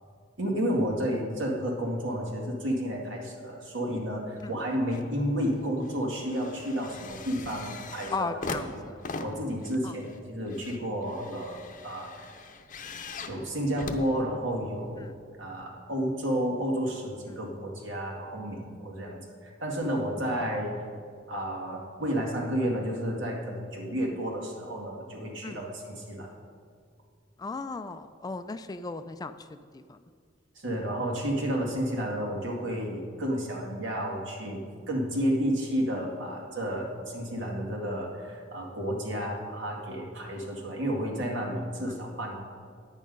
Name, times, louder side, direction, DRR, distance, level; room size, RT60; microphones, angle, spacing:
voice 1, 0.4-8.3 8.5-8.9 9.2-12.4 13.3-15.0 15.4-20.7 21.3-26.3 30.6-34.6 34.9-42.4, equal, 80° right, -1 dB, 2.1 m, -31 dB
sound 1, 4.4-5.1 5.4-14.8 15.6-15.7, left 3 dB, 45° left, 0.7 m, -41 dB
voice 2, 8.1-9.0 9.8-9.9 15.0-15.1 25.4-25.6 27.4-29.4 29.7-30.0 41.9-42.0, left 3 dB, 20° left, 11 dB, 0.3 m, -36 dB
10.0 x 8.5 x 5.3 m, 2.1 s
head